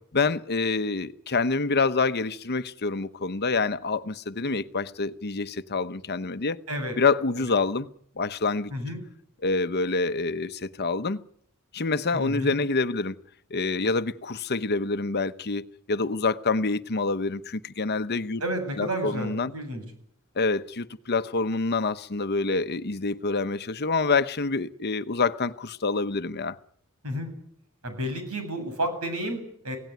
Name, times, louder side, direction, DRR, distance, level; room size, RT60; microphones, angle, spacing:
voice 1, 0.1-6.6 7.0-7.9 8.2-8.7 9.4-11.2 11.7-13.1 13.5-18.4 18.8-19.5 20.4-26.6, left 3 dB, 50° left, 0.9 m, -27 dB
voice 2, 12.1-12.6 18.4-19.8 27.0-27.3 27.8-29.8, equal, 80° right, 7.7 m, -31 dB
26.0 x 17.5 x 9.5 m
head